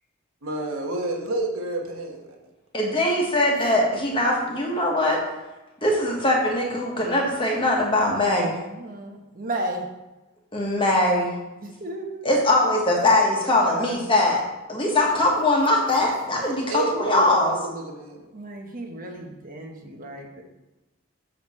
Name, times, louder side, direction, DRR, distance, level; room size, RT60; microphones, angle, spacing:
voice 1, 0.4-2.3 16.7-18.3, right 2 dB, 75° right, 1 dB, 1.2 m, -29 dB
voice 2, 2.7-5.2 5.8-8.5 10.5-11.3 12.2-14.4 14.7-17.5, left 1 dB, 25° left, -1 dB, 1.3 m, -21 dB
voice 3, 8.1-9.8 11.6-12.2 12.6-13.1 13.4-14.0 18.3-20.4, right 1 dB, 40° right, 2 dB, 1.0 m, -35 dB
6.7 x 6.3 x 4.3 m, 1.0 s
head